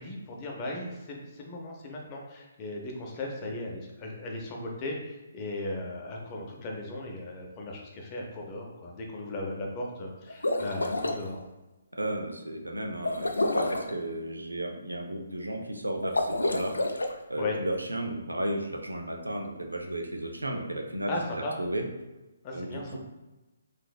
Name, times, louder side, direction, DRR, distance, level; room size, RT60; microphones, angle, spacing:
voice 1, 0.0-11.4 17.4-17.6 21.1-21.5 22.4-23.0, left 2 dB, 25° left, 0 dB, 0.6 m, -37 dB
sound 1, 10.3-11.2 13.0-13.9 16.0-17.1, left 2 dB, 80° left, 0.4 m, -28 dB
voice 2, 12.0-16.7 17.3-21.8 22.5-23.0, right 1 dB, 85° right, 2 dB, 0.5 m, -34 dB
3.8 x 2.6 x 2.3 m, 1.1 s
figure-of-eight pair, 140°, 0 cm